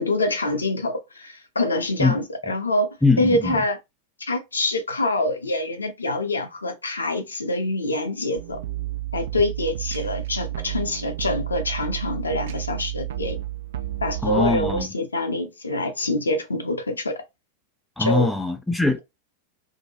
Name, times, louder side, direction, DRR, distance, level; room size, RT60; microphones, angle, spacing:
voice 1, 0.0-2.9 3.2-3.8 4.2-8.6 9.1-13.4 14.0-17.2 18.0-18.3, left 2 dB, 75° left, 0.6 m, -25 dB
voice 2, 3.0-3.6 14.2-14.9 18.0-19.0, left 3 dB, 5° left, 0.4 m, -22 dB
sound 1, 8.4-14.9, right 15 dB, 60° right, 0.4 m, -31 dB
2.7 x 2.1 x 2.8 m
figure-of-eight pair, 90°, 0 cm